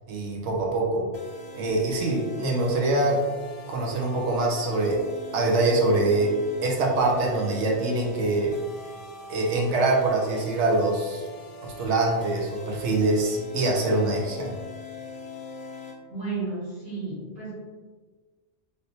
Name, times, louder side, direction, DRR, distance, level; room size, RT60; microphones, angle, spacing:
voice 1, 0.1-1.1 1.5-3.2 3.7-5.0 5.3-6.3 6.6-8.5 9.3-11.3 11.6-14.5, right 2 dB, 75° right, -1 dB, 1.0 m, -24 dB
sound 1, 1.1-16.0, left 4 dB, 75° left, 0.9 m, -42 dB
voice 2, 16.1-17.5, right 3 dB, 35° right, -9 dB, 1.4 m, -32 dB
3.3 x 2.7 x 2.7 m, 1.4 s
omnidirectional pair, 1.2 m